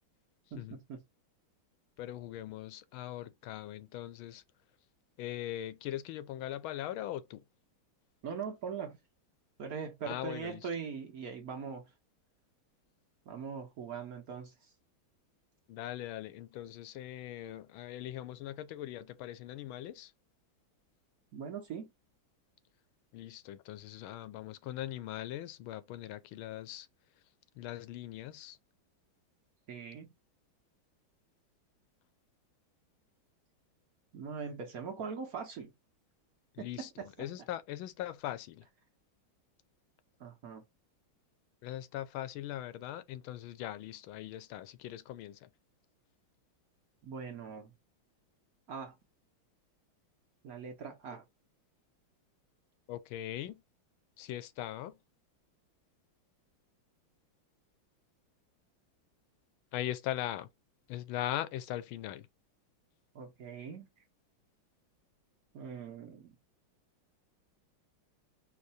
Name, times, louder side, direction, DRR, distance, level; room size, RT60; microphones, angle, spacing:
voice 1, 0.5-1.0 8.2-9.0 9.6-11.8 13.2-14.7 21.3-21.9 29.7-30.1 34.1-35.7 36.6-37.3 40.2-40.6 47.0-47.7 48.7-49.0 50.4-51.2 63.1-63.9 65.5-66.4, right 6 dB, 60° right, 1.1 m, -41 dB
voice 2, 2.0-4.4 5.2-7.4 10.0-10.6 15.7-20.1 23.1-26.9 27.6-28.6 36.5-36.9 37.2-38.6 41.6-45.5 52.9-53.6 54.2-55.0 59.7-60.5 60.9-62.3, left 13 dB, 85° left, 1.4 m, -40 dB
4.5 x 2.6 x 4.0 m
omnidirectional pair, 2.2 m